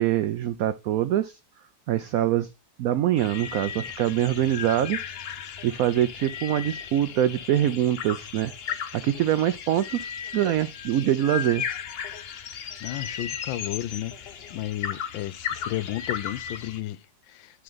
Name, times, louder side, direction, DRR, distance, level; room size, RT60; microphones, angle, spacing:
voice 1, 0.0-1.4 1.9-2.5 2.8-5.0 5.6-8.5 8.9-11.6, right 12 dB, 80° right, 0.7 m, -24 dB
sound 1, 3.2-16.8, left 8 dB, 60° left, 0.6 m, -36 dB
voice 2, 12.8-17.6, left 14 dB, 85° left, 1.3 m, -33 dB
10.5 x 3.7 x 3.9 m
omnidirectional pair, 2.0 m